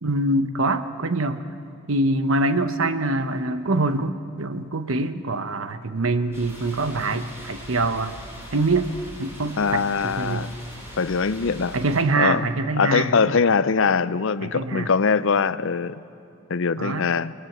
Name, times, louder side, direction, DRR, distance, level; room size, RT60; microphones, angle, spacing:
voice 1, 0.0-1.4 1.9-8.1 8.5-8.9 9.2-10.5 11.7-13.3 14.4-14.9 16.8-17.1, right 2 dB, 75° right, 10 dB, 1.0 m, -24 dB
sound 1, 6.3-12.0, equal, 15° right, 7.5 m, -41 dB
voice 2, 9.6-10.5 11.0-11.8 12.1-12.4 12.8-16.0 16.5-17.3, left 5 dB, 65° left, 16 dB, 0.6 m, -22 dB
28.5 x 19.0 x 7.4 m, 2.5 s
head